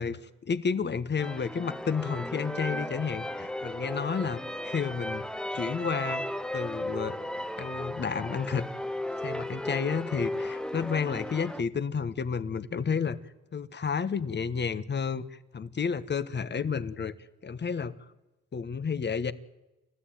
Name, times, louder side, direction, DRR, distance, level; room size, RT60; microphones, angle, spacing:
voice 1, 0.0-5.3 5.5-6.2 6.5-7.2 7.6-8.7 9.2-13.2 13.5-17.1 17.4-17.9 18.5-19.3, left 6 dB, 35° left, 1.4 m, -31 dB
sound 1, 1.2-11.6, left 1 dB, 5° left, 1.0 m, -35 dB
29.5 x 14.0 x 9.1 m
cardioid pair, 90°, 30 cm